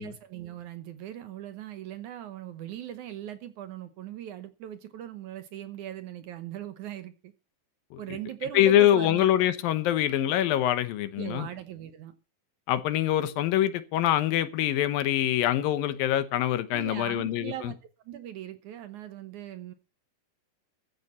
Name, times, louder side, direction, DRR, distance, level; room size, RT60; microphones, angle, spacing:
voice 1, 0.0-7.3 8.0-9.3 11.2-12.1 16.7-17.8 18.1-19.7, right 11 dB, 70° right, 2.0 m, -39 dB
voice 2, 8.5-11.5 12.7-17.7, left 12 dB, 75° left, 2.8 m, -24 dB
14.5 x 6.7 x 7.4 m
omnidirectional pair, 4.2 m